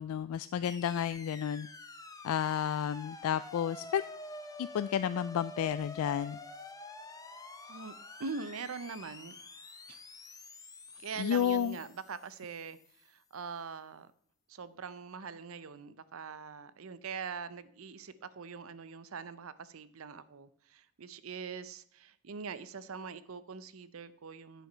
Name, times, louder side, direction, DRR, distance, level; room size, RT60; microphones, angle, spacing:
voice 1, 0.0-1.7 2.2-4.0 4.6-6.4 11.2-11.8, left 9 dB, 85° left, 0.3 m, -31 dB
sound 1, 0.6-12.9, left 2 dB, 15° left, 0.8 m, -48 dB
voice 2, 7.7-9.3 9.9-10.0 10.9-14.1 14.5-24.7, right 5 dB, 75° right, 0.6 m, -43 dB
9.9 x 5.8 x 5.5 m
head